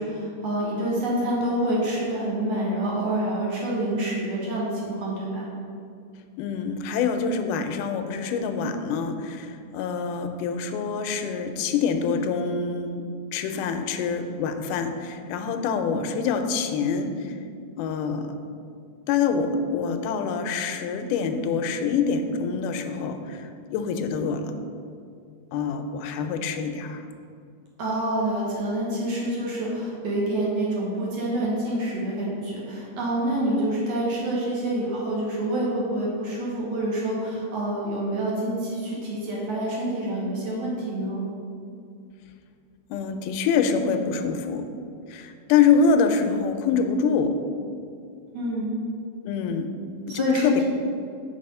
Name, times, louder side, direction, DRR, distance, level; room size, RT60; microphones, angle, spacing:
voice 1, 0.0-5.5 27.8-41.2 48.3-48.7 50.1-50.7, right 1 dB, 60° right, -5 dB, 2.2 m, -27 dB
voice 2, 6.4-17.4 17.8-18.3 19.1-24.5 25.5-27.0 42.9-44.6 45.1-47.4 49.3-49.8 50.1-50.6, left 5 dB, 90° left, 7 dB, 2.1 m, -25 dB
6.1 x 4.1 x 5.3 m, 2.4 s
omnidirectional pair, 3.6 m